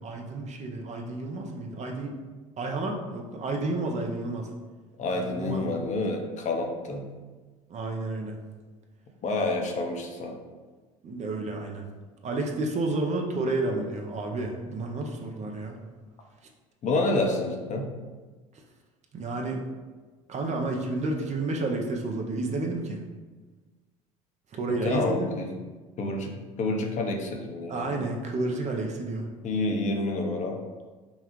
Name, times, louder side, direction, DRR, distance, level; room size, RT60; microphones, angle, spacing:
voice 1, 0.0-2.1 2.6-4.5 5.2-5.8 7.7-8.4 11.0-11.9 12.2-15.7 19.1-19.7 20.3-23.0 24.5-25.3 27.7-29.3, right 2 dB, 40° right, 2 dB, 0.7 m, -31 dB
voice 2, 5.0-7.1 9.2-10.4 16.8-17.9 24.7-25.5 26.0-28.0 29.4-30.6, left 2 dB, 40° left, 2 dB, 0.7 m, -28 dB
5.4 x 2.3 x 3.1 m, 1.3 s
hypercardioid pair, 70°, 18 cm